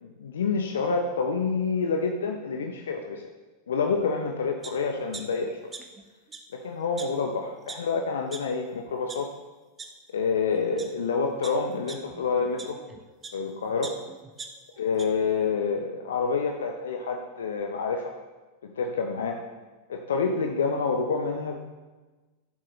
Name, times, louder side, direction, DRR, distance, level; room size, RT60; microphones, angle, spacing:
voice 1, 0.0-3.3 3.7-5.7 6.5-9.3 10.1-12.8 13.3-14.0 14.8-18.1 18.6-19.4 19.9-21.6, left 5 dB, 65° left, 3 dB, 0.8 m, -28 dB
sound 1, 4.6-4.7 5.1-6.0 6.3-6.4 7.0-7.1 7.7-7.8 8.3-8.4 8.9-9.2 9.8-9.9 10.6-10.9 11.4-13.4 13.8-15.0 15.5-15.6, right 5 dB, 15° right, 1.0 m, -41 dB
15.5 x 7.6 x 3.3 m, 1.2 s
figure-of-eight pair, 90°, 0 cm